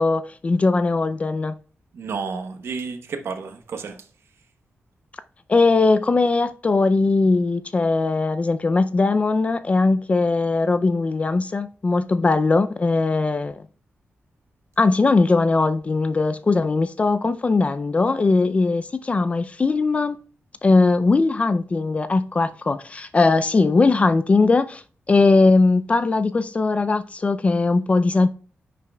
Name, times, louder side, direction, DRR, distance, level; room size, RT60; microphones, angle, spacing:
voice 1, 0.0-1.5 5.5-13.6 14.8-20.2 20.6-28.3, left 3 dB, 30° left, 0.4 m, -20 dB
voice 2, 1.9-4.0, right 5 dB, 75° right, 1.1 m, -31 dB
10.0 x 6.6 x 2.3 m
wide cardioid pair, 130°, 4 cm